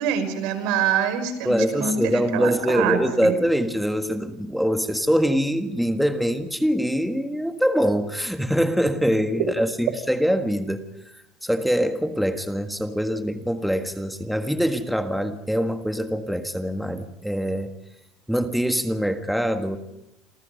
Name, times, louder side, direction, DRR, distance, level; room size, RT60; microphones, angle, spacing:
voice 1, 0.0-3.4, right 7 dB, 70° right, 9 dB, 5.6 m, -25 dB
voice 2, 1.5-10.8 11.4-17.7 18.3-19.8, equal, ahead, 7 dB, 1.6 m, -24 dB
27.5 x 27.0 x 5.3 m, 0.86 s
supercardioid pair, 130°, 0 cm